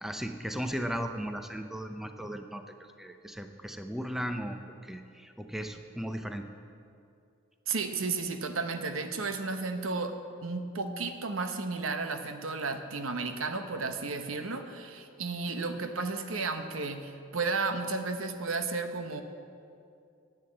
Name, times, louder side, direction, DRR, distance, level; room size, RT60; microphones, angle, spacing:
voice 1, 0.0-2.6 3.0-6.5, equal, ahead, 6 dB, 0.6 m, -36 dB
voice 2, 7.7-10.1 10.4-19.2, right 4 dB, 85° right, 7 dB, 1.0 m, -33 dB
11.0 x 8.7 x 8.6 m, 2.5 s
head